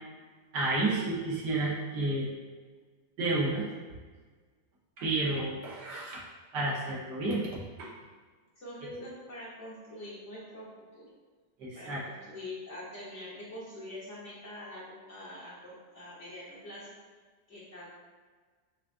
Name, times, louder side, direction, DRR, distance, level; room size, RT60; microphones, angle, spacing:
voice 1, 0.5-2.3 3.2-3.7 5.0-6.2 6.5-7.4 7.8-7.9 11.6-12.0, right 2 dB, 75° right, -5 dB, 1.6 m, -30 dB
voice 2, 8.6-11.1 11.7-16.9 17.5-17.9, left 1 dB, 45° left, -9 dB, 1.4 m, -44 dB
6.0 x 2.4 x 2.5 m, 1.4 s
omnidirectional pair, 1.9 m